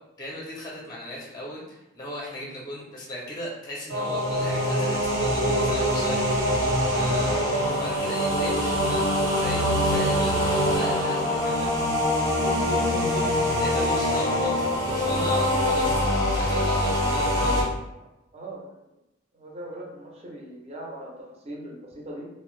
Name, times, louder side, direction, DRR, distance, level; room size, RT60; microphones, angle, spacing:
voice 1, 0.2-9.0 9.3-13.3 13.6-16.0 16.3-17.6, left 1 dB, 20° left, -3 dB, 0.5 m, -37 dB
sound 1, 3.9-17.6, equal, 80° right, 1.1 m, -24 dB
voice 2, 17.2-17.5 18.0-18.1 18.3-18.9 19.3-22.3, right 1 dB, 35° right, -2 dB, 0.6 m, -40 dB
2.6 x 2.0 x 3.1 m, 0.92 s
head